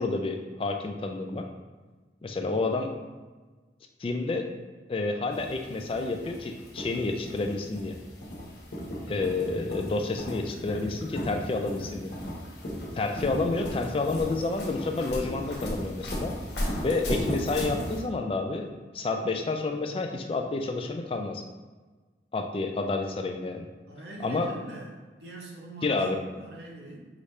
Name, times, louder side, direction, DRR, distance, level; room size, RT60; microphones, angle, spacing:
voice 1, 0.0-1.5 2.2-2.9 4.0-4.5 4.9-8.0 9.1-12.1 12.9-16.3 16.8-18.7 18.9-21.4 22.3-23.7 24.2-24.5 25.8-26.2, left 3 dB, 30° left, 4 dB, 0.3 m, -29 dB
sound 1, 5.3-18.0, equal, 70° left, 1.1 m, -35 dB
voice 2, 23.9-27.1, right 2 dB, 65° right, -2 dB, 0.9 m, -43 dB
4.9 x 2.7 x 3.2 m, 1.3 s
head